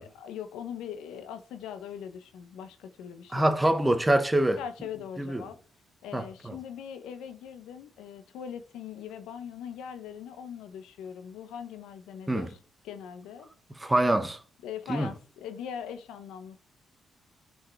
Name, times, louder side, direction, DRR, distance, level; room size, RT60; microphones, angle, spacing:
voice 1, 0.0-3.6 4.6-5.6 6.0-12.6 12.8-13.5 14.6-16.6, left 8 dB, 90° left, 0.9 m, -41 dB
voice 2, 3.3-4.6 5.2-5.4 6.1-6.6 12.3-12.5 13.8-14.4 14.9-15.1, right 1 dB, 10° right, 1.0 m, -25 dB
11.0 x 4.6 x 4.5 m
cardioid pair, 90°, 0 cm